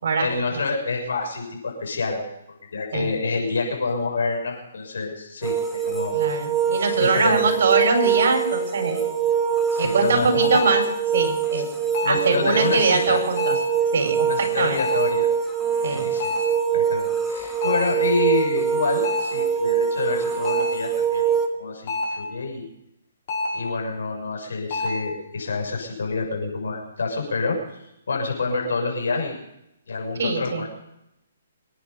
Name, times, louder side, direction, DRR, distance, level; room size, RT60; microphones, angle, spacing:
voice 1, 0.2-6.2 7.0-7.4 9.7-10.6 11.5-11.6 12.0-13.2 14.2-15.3 15.9-16.3 16.7-21.2 21.6-22.7 23.5-27.6 28.1-29.4 29.9-30.7, left 4 dB, 80° left, 1 dB, 6.5 m, -27 dB
sound 1, 5.4-21.5, right 7 dB, ahead, 1.7 m, -24 dB
voice 2, 6.1-9.1 9.8-10.8 11.1-11.7 12.0-13.5 13.9-14.8 15.8-16.1 30.2-30.6, right 4 dB, 65° right, 4 dB, 4.9 m, -22 dB
sound 2, 9.4-9.5 10.5-10.9 11.9-12.3 13.4-13.8 14.8-15.1 16.2-16.6 17.6-18.0 19.0-19.4 20.4-20.8 21.9-22.3 23.3-23.7 24.7-25.1, left 2 dB, 45° left, 6.7 m, -27 dB
25.5 x 10.0 x 5.3 m, 0.85 s
hypercardioid pair, 155°, 0 cm